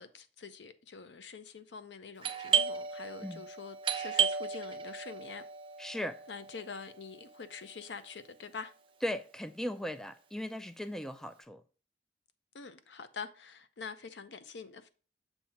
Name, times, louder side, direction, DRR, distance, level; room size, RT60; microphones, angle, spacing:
voice 1, 0.0-5.4 6.3-8.7 12.5-14.9, left 5 dB, 80° left, 0.6 m, -45 dB
Doorbell, 2.2-7.7, right 7 dB, 30° right, 0.7 m, -34 dB
voice 2, 5.8-6.2 9.0-11.6, equal, 5° left, 0.3 m, -37 dB
7.1 x 2.8 x 5.6 m
head